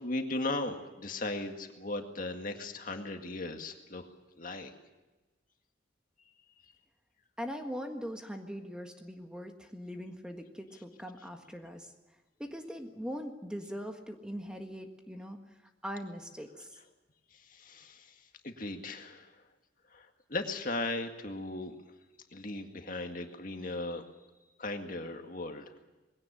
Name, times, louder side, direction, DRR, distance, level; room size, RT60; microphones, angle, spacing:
voice 1, 0.0-4.1 4.4-4.7 17.3-19.3 19.9-21.8 22.3-24.0 24.6-25.7, left 2 dB, 50° left, 5 dB, 2.0 m, -37 dB
voice 2, 7.4-11.9 12.4-15.4 15.8-16.8, equal, 5° right, 4 dB, 1.6 m, -41 dB
21.5 x 17.0 x 9.9 m, 1.1 s
head